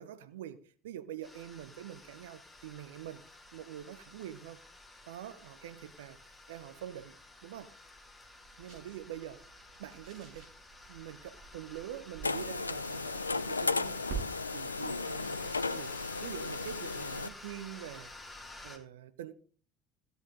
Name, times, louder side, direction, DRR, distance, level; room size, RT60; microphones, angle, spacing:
voice 1, 0.0-3.3 3.5-4.6 5.1-6.2 6.5-7.2 7.4-7.8 8.6-9.5 9.8-10.5 10.9-14.0 14.5-18.1 18.6-19.3, right 11 dB, 70° right, 0.9 m, -45 dB
sound 1, 1.2-18.8, left 2 dB, 5° left, 2.5 m, -52 dB
sound 2, 7.1-17.4, right 7 dB, 50° right, 7.2 m, -49 dB
sound 3, 12.2-17.3, left 3 dB, 85° left, 0.4 m, -35 dB
15.5 x 8.3 x 3.8 m
figure-of-eight pair, 65°, 0 cm